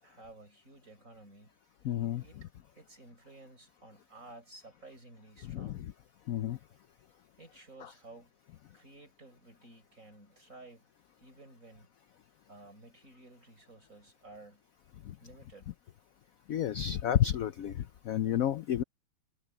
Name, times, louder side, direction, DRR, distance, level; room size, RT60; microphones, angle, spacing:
voice 1, 0.0-1.6 2.2-2.5 2.7-5.8 7.4-8.3 8.7-10.9 11.2-11.9 12.5-14.6 15.2-15.7, right 2 dB, 45° right, 7.4 m, -54 dB
voice 2, 1.8-2.2 5.5-5.9 6.3-6.6 15.0-15.1 16.5-18.8, left 11 dB, 65° left, 0.9 m, -31 dB
omnidirectional pair, 2.0 m